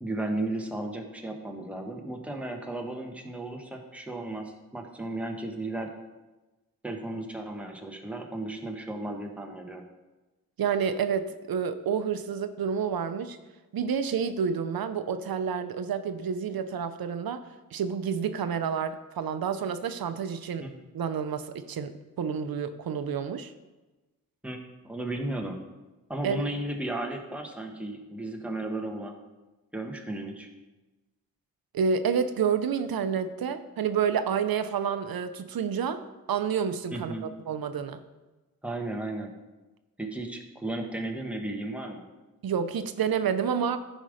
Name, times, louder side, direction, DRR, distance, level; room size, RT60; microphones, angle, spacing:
voice 1, 0.0-5.9 6.8-9.9 20.6-20.7 24.4-25.6 26.1-29.1 29.7-30.5 36.9-37.2 38.6-39.3 40.0-42.0, right 2 dB, 5° right, 1 dB, 1.2 m, -34 dB
voice 2, 10.6-13.4 13.7-17.4 17.7-23.5 26.2-26.4 31.7-36.0 36.3-38.0 42.4-43.8, right 7 dB, 85° right, 10 dB, 0.7 m, -29 dB
14.0 x 5.3 x 5.0 m, 1.1 s
wide cardioid pair, 135°, 35 cm